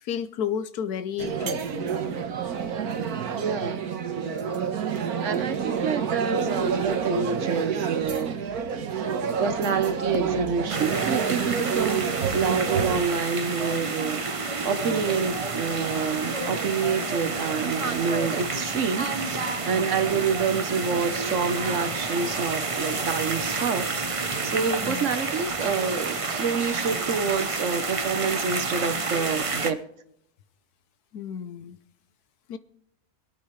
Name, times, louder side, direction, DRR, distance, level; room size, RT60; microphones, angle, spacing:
voice 1, 0.0-1.6 24.8-25.1 31.1-31.8 32.5-32.6, left 8 dB, 90° left, 13 dB, 1.4 m, -31 dB
sound 1, 1.2-13.0, right 7 dB, 75° right, 1.6 m, -28 dB
voice 2, 3.4-3.9 5.2-8.4 9.4-29.8, right 5 dB, 60° right, 11 dB, 1.3 m, -28 dB
sound 2, 10.7-29.7, right 3 dB, 30° right, 0.7 m, -29 dB
26.0 x 8.9 x 3.2 m, 0.73 s
omnidirectional pair, 1.6 m